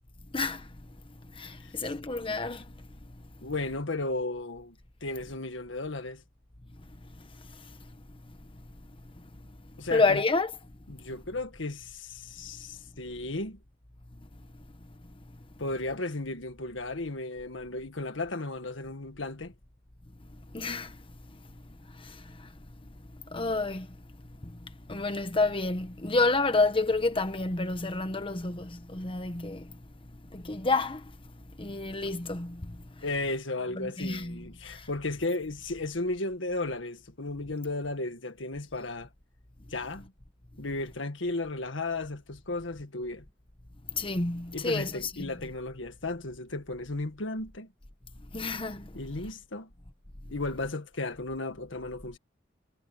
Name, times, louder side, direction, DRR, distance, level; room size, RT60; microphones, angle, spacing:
voice 1, 0.3-0.7 1.3-2.7 7.6-7.7 9.9-10.5 20.5-21.0 21.9-22.5 23.3-23.9 24.4-29.7 30.3-31.1 31.6-33.0 33.7-34.9 43.9-45.1 48.3-48.9, left 3 dB, 30° left, 1.2 m, -29 dB
voice 2, 1.6-2.0 3.4-4.8 5.0-6.2 9.8-10.2 10.9-13.6 15.6-19.5 33.0-39.1 39.7-40.1 40.6-43.3 44.5-47.7 48.9-49.7 50.3-52.2, left 2 dB, 80° left, 1.8 m, -34 dB
head